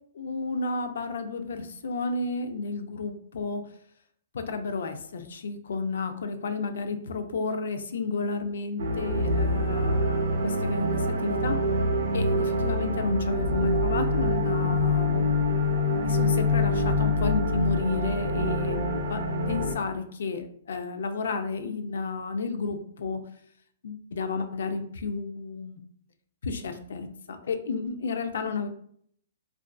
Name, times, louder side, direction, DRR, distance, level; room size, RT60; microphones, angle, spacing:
voice 1, 0.1-3.6 4.3-11.6 12.1-15.3 15.9-23.2 23.8-25.8 26.4-28.7, left 4 dB, 70° left, 8 dB, 0.4 m, -32 dB
sound 1, 8.8-19.7, left 1 dB, 70° right, 0.5 m, -25 dB
2.4 x 2.4 x 2.2 m, 0.63 s
hypercardioid pair, 175°, 0 cm